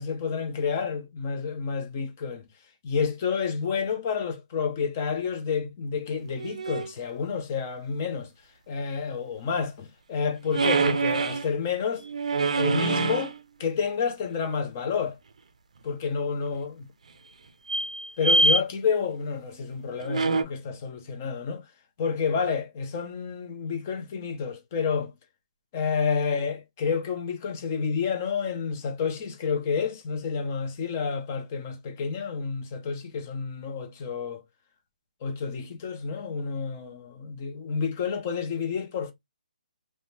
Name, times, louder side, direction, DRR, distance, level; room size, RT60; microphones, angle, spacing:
voice 1, 0.0-2.4 2.8-8.3 8.7-12.0 12.5-13.3 13.6-15.2 15.8-16.7 18.2-21.6 22.0-25.1 25.7-34.4 35.2-39.1, left 6 dB, 15° left, 0.4 m, -29 dB
sound 1, 6.2-6.9 10.5-11.5 12.0-13.4 16.5-16.6 17.7-18.6 20.0-20.4, right 2 dB, 50° right, 0.4 m, -24 dB
2.6 x 2.1 x 3.1 m
hypercardioid pair, 180°, 5 cm